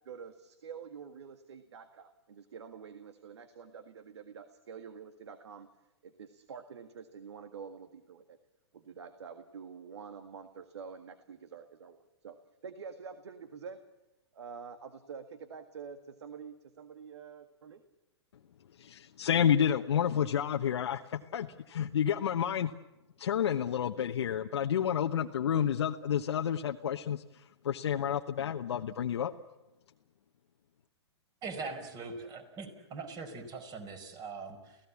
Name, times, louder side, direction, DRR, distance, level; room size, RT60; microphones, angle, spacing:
voice 1, 0.1-5.7 6.0-8.4 8.7-12.4 12.6-13.8 14.3-17.8, right 6 dB, 75° right, 9 dB, 1.8 m, -47 dB
voice 2, 18.8-22.7 23.2-27.2 27.6-29.3, left 9 dB, 70° left, 4 dB, 1.1 m, -30 dB
voice 3, 31.4-34.8, right 4 dB, 25° right, 8 dB, 5.1 m, -42 dB
30.0 x 16.5 x 8.5 m, 1.0 s
hypercardioid pair, 120°, 14 cm